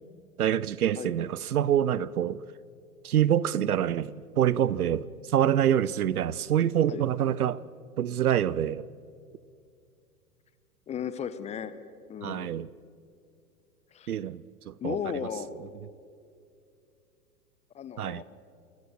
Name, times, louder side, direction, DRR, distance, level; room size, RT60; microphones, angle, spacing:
voice 1, 0.4-2.4 3.0-7.6 8.0-8.9 12.2-12.7 14.1-15.0 18.0-18.2, right 10 dB, 70° right, 0.7 m, -26 dB
voice 2, 10.9-11.7 12.1-12.5 13.9-14.1 14.8-15.5 17.7-18.2, left 8 dB, 15° left, 0.7 m, -35 dB
29.0 x 16.0 x 6.3 m
figure-of-eight pair, 95°, 46 cm